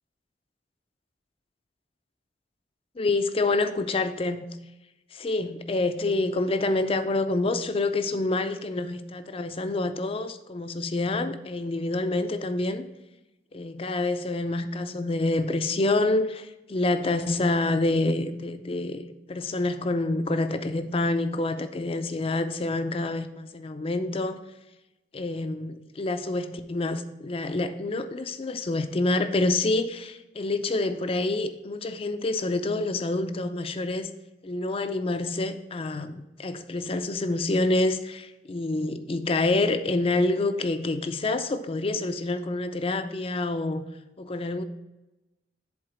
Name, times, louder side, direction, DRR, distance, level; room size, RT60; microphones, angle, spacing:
voice 1, 3.0-4.5 5.1-12.9 13.5-24.4 25.1-34.1 34.4-43.9 44.2-44.6, left 2 dB, 30° left, 0.4 m, -27 dB
7.9 x 3.9 x 6.0 m
head